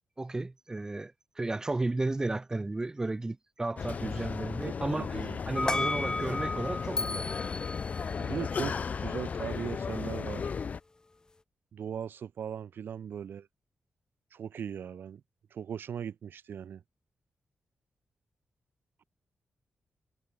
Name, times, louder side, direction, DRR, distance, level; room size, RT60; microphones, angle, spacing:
voice 1, 0.2-1.1 1.4-5.2 5.5-7.2, right 2 dB, 15° right, 1.1 m, -33 dB
sound 1, 3.8-10.8, left 5 dB, 40° left, 0.5 m, -35 dB
voice 2, 4.6-5.4 8.1-8.8 9.0-10.5 11.7-13.5 14.3-15.2 15.5-16.8, right 8 dB, 70° right, 1.7 m, -38 dB
sound 2, 5.6-8.8, left 3 dB, 20° left, 1.1 m, -34 dB
wide cardioid pair, 140°, 4 cm